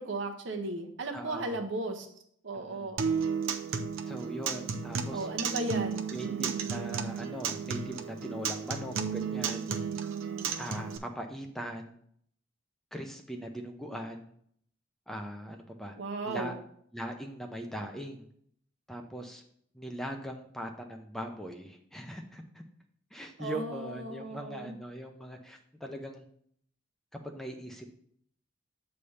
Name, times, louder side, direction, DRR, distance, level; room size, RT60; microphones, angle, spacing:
voice 1, 0.0-2.1 2.4-3.0 5.1-6.1 16.0-16.6 23.4-24.8, right 2 dB, 65° right, 3 dB, 0.9 m, -35 dB
voice 2, 1.1-1.6 2.5-2.9 4.1-5.3 6.1-9.7 10.6-12.0 12.9-14.3 15.1-16.0 16.3-16.5 16.9-18.3 18.9-19.4 19.7-22.6 23.1-26.2 27.2-27.9, right 1 dB, ahead, 3 dB, 0.6 m, -40 dB
Acoustic guitar, 3.0-11.0, right 6 dB, 80° right, 0.6 m, -33 dB
8.2 x 3.4 x 5.5 m, 0.65 s
head